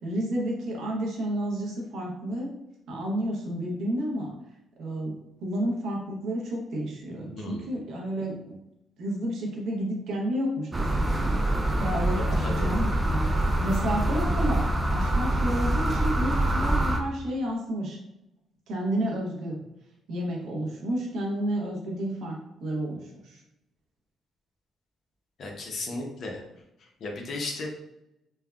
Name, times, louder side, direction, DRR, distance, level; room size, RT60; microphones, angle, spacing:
voice 1, 0.0-2.5 2.9-4.3 4.8-8.6 9.0-11.4 11.7-18.0 18.7-19.6 20.1-23.4, right 1 dB, 75° right, -1 dB, 0.7 m, -31 dB
voice 2, 7.2-7.7 12.1-12.7 25.4-26.4 27.0-27.7, left 2 dB, 60° left, 0 dB, 0.7 m, -35 dB
sound 1, 10.7-17.0, right 1 dB, 25° right, 0.4 m, -25 dB
3.3 x 2.1 x 2.3 m, 0.87 s
cardioid pair, 90°, 0 cm